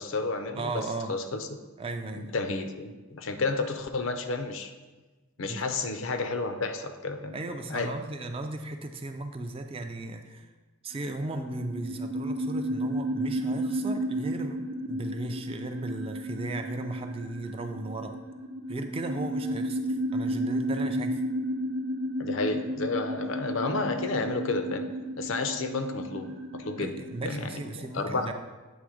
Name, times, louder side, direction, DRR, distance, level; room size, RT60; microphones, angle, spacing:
voice 1, 0.0-0.8 1.1-1.5 2.1-4.7 5.4-7.9 22.2-24.9 25.2-26.9 27.3-28.3, left 3 dB, 60° left, 8 dB, 0.5 m, -31 dB
voice 2, 0.5-1.1 1.8-2.3 5.4-5.6 7.3-10.5 10.8-14.6 14.9-18.2 18.7-21.2 26.8-28.3, right 2 dB, 25° right, 6 dB, 0.3 m, -36 dB
sound 1, 10.9-27.3, right 1 dB, 55° right, 0.7 m, -33 dB
8.0 x 3.4 x 4.9 m, 1.2 s
head